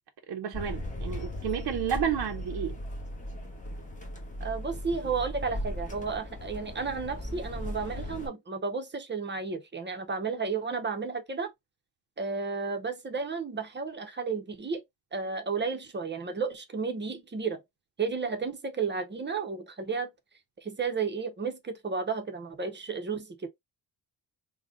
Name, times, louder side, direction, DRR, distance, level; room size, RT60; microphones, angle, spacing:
voice 1, 0.3-2.8, right 8 dB, 60° right, 0.6 m, -31 dB
sound 1, 0.5-8.3, left 1 dB, 15° left, 0.9 m, -37 dB
voice 2, 4.4-11.5 12.2-14.8 15.1-17.6 18.0-20.1 20.6-23.5, right 5 dB, 25° right, 0.6 m, -32 dB
3.7 x 2.1 x 3.6 m
wide cardioid pair, 165°, 44 cm